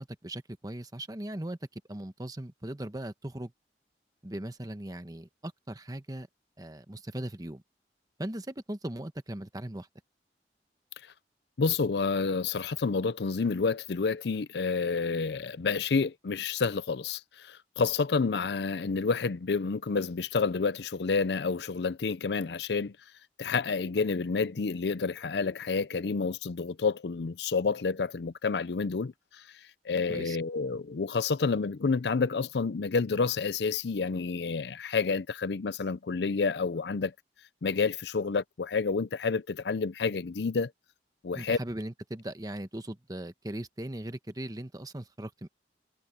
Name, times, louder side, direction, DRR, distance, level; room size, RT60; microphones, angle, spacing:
voice 1, 0.0-1.6 1.9-3.5 4.2-6.3 6.6-7.6 8.2-9.9 30.1-30.4 41.4-45.5, right 1 dB, 20° right, 1.1 m, -38 dB
voice 2, 11.6-22.9 23.4-29.1 29.9-37.1 37.6-40.7 41.2-41.6, left 4 dB, 70° left, 0.5 m, -29 dB
head